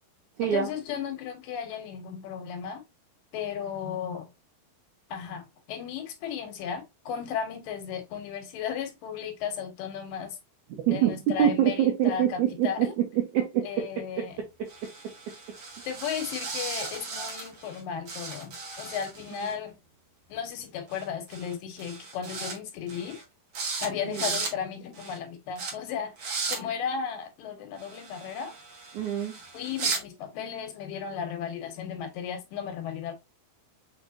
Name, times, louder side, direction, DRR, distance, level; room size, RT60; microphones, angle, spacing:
voice 1, 0.4-2.8 3.3-4.3 5.1-10.4 10.9-12.9 13.6-14.4 15.8-19.8 20.3-23.2 23.8-26.2 26.5-28.6 29.5-33.1, left 7 dB, 75° left, 2.5 m, -35 dB
voice 2, 10.9-13.6 24.0-24.3 28.9-29.4, right 10 dB, 75° right, 1.9 m, -25 dB
sound 1, 14.7-17.8 18.1-19.5 20.9-21.0 21.3-21.5 21.8-22.6 22.9-23.2 23.5-23.9 24.1-24.5 24.9-25.2 25.6-25.7 26.2-26.6 27.8-30.0, right 4 dB, 50° right, 2.1 m, -36 dB
6.2 x 3.2 x 2.6 m
omnidirectional pair, 4.3 m